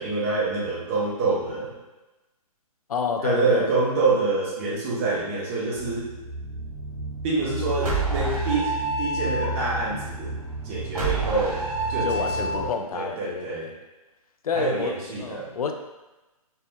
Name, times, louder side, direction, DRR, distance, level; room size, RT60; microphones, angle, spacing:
voice 1, 0.0-1.7 3.2-6.1 7.2-10.3 10.6-11.6 11.9-12.7 12.9-13.7 14.5-15.5, right 3 dB, 20° right, -4 dB, 0.6 m, -26 dB
voice 2, 2.9-3.7 12.0-13.8 14.4-15.7, left 5 dB, 75° left, 5 dB, 0.5 m, -29 dB
sound 1, 5.7-12.7, right 2 dB, 90° right, 1.2 m, -29 dB
4.3 x 2.0 x 3.4 m, 1.1 s
hypercardioid pair, 160°, 19 cm